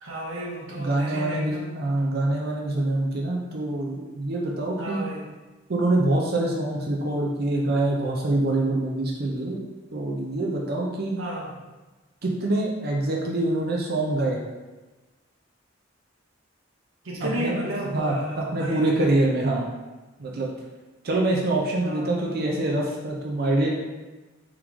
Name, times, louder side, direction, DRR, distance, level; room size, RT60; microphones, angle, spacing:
voice 1, 0.0-1.7 4.8-5.3 11.2-11.5 17.0-18.9 21.8-22.5, right 1 dB, 85° right, -4 dB, 1.0 m, -33 dB
voice 2, 0.7-5.0 5.7-9.6 9.9-11.2 12.2-14.4 17.2-17.6 17.9-19.6 20.2-20.5 21.0-23.7, right 2 dB, 50° right, -1 dB, 0.6 m, -25 dB
3.7 x 3.1 x 3.6 m, 1.2 s
head